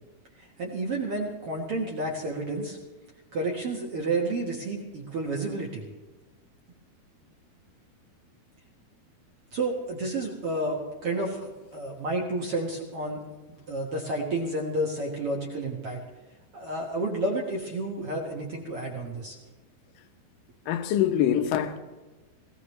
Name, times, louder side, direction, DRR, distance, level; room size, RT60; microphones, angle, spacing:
voice 1, 0.4-2.8 3.3-5.8 9.5-13.2 13.7-16.0 16.5-19.4, right 2 dB, 60° right, 1.5 m, -30 dB
voice 2, 20.7-21.8, left 10 dB, 70° left, 2.3 m, -24 dB
18.0 x 17.5 x 3.2 m
omnidirectional pair, 4.7 m